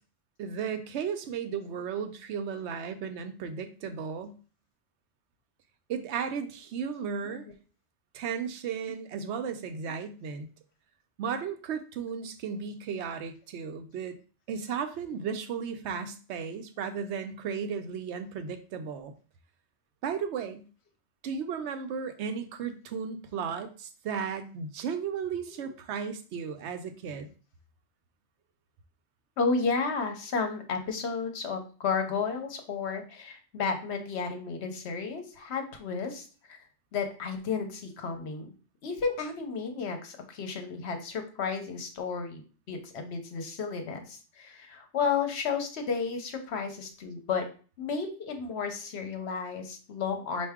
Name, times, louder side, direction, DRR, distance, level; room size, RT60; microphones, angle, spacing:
voice 1, 0.4-4.4 5.9-7.5 8.1-10.5 11.2-14.2 14.5-19.1 20.0-20.6 21.2-27.3, right 6 dB, 75° right, 8 dB, 0.9 m, -35 dB
voice 2, 29.4-36.6 36.9-38.5 38.8-42.4 42.7-47.5 47.8-50.5, left 5 dB, 70° left, 5 dB, 1.0 m, -32 dB
4.5 x 2.6 x 3.5 m, 0.37 s
omnidirectional pair, 1.2 m